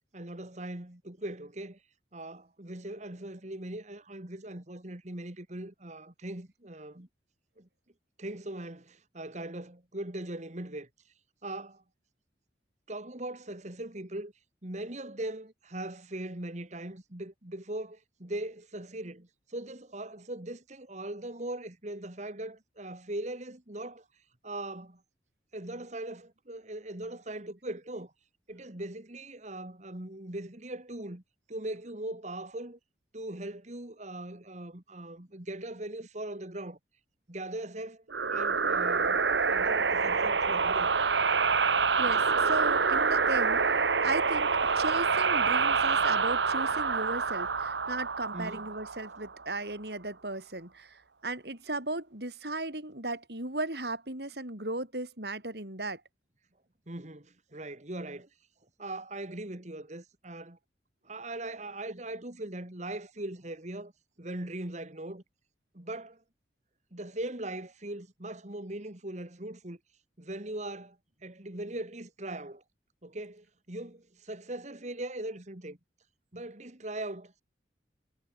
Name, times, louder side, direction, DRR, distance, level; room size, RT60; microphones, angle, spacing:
voice 1, 0.1-1.8 2.1-7.1 7.6-7.7 8.2-10.9 11.4-11.8 12.9-14.3 14.6-24.1 24.4-25.0 25.5-28.1 28.5-31.2 31.5-32.8 33.1-36.8 37.3-38.0 38.3-40.9 48.3-48.7 56.9-58.3 58.8-60.6 61.0-63.9 64.2-65.2 65.7-66.2 66.9-69.8 70.2-72.6 73.0-75.8 76.3-77.4, right 1 dB, 40° right, 2.2 m, -40 dB
sound 1, 38.1-49.4, right 5 dB, 85° right, 1.6 m, -27 dB
voice 2, 42.0-44.5 44.7-56.0, right 2 dB, 65° right, 6.3 m, -36 dB
head